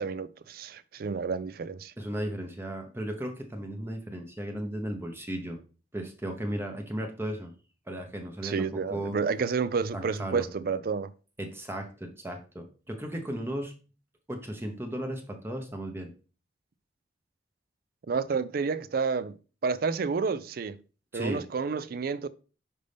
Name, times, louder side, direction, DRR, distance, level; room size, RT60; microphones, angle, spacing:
voice 1, 0.0-1.9 8.4-11.1 18.1-19.4 19.6-20.8 21.1-22.3, right 5 dB, 55° right, 0.4 m, -30 dB
voice 2, 2.0-5.6 5.9-7.5 7.9-9.2 9.9-10.5 11.4-13.7 14.3-16.1 21.1-21.4, right 1 dB, 15° right, 0.8 m, -35 dB
5.4 x 5.2 x 3.4 m
head